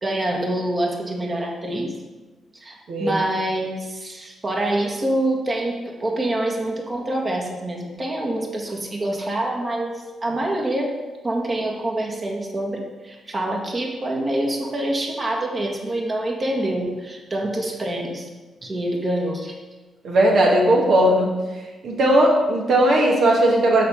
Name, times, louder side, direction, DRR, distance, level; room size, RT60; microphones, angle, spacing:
voice 1, 0.0-1.9 2.5-10.9 11.2-18.3 18.6-19.5, right 1 dB, 40° right, 0 dB, 1.9 m, -26 dB
voice 2, 2.9-3.2 20.0-21.3 21.8-23.9, right 1 dB, 65° right, -1 dB, 1.6 m, -17 dB
6.5 x 5.0 x 5.8 m, 1.2 s
hypercardioid pair, 45°, 0 cm